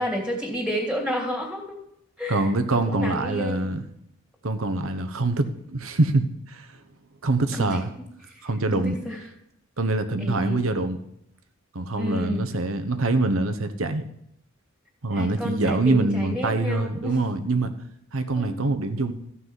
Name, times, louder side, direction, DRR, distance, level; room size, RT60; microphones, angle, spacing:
voice 1, 0.0-1.8 2.2-3.7 7.5-8.1 8.4-9.2 10.2-10.7 12.0-12.5 15.1-17.3 18.3-18.6, equal, 5° right, 0 dB, 2.5 m, -31 dB
voice 2, 2.3-3.8 4.4-6.7 7.2-7.9 8.4-9.0 9.8-11.0 11.7-14.0 15.0-17.7 18.1-19.1, right 2 dB, 90° right, 9 dB, 1.1 m, -24 dB
14.0 x 5.6 x 8.1 m, 0.76 s
head